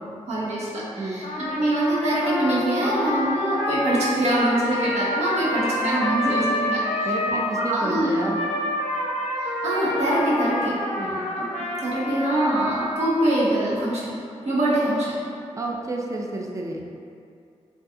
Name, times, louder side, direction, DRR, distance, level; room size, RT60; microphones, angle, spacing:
voice 1, 0.3-7.4 7.7-8.1 9.4-10.8 11.4-11.5 11.8-14.1 14.4-15.1, right 1 dB, 65° right, -8 dB, 0.6 m, -24 dB
Trumpet, 1.2-7.7 8.2-13.5, left 1 dB, 65° left, 0.4 m, -28 dB
voice 2, 7.1-8.4 11.0-11.2 15.6-16.8, right 2 dB, 25° right, 0 dB, 0.4 m, -30 dB
2.3 x 2.3 x 2.6 m, 2.4 s
supercardioid pair, 45°, 12 cm